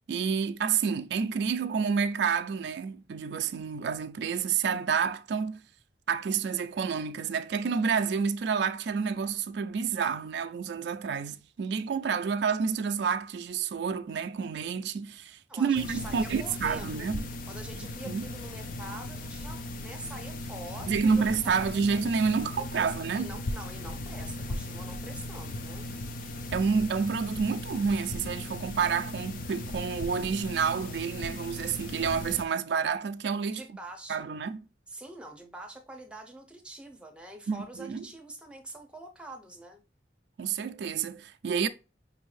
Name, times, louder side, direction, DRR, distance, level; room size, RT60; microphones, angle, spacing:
voice 1, 0.1-5.6 6.1-17.3 18.0-18.2 20.9-23.4 26.5-33.6 34.1-34.6 37.5-38.1 40.4-41.7, right 6 dB, 60° right, 0.3 m, -29 dB
voice 2, 15.5-17.1 17.5-21.9 22.6-25.9 33.5-34.2 34.9-39.8, right 1 dB, 5° right, 0.7 m, -45 dB
sound 1, 15.7-32.4, left 1 dB, 45° left, 0.5 m, -38 dB
5.4 x 2.6 x 3.1 m
head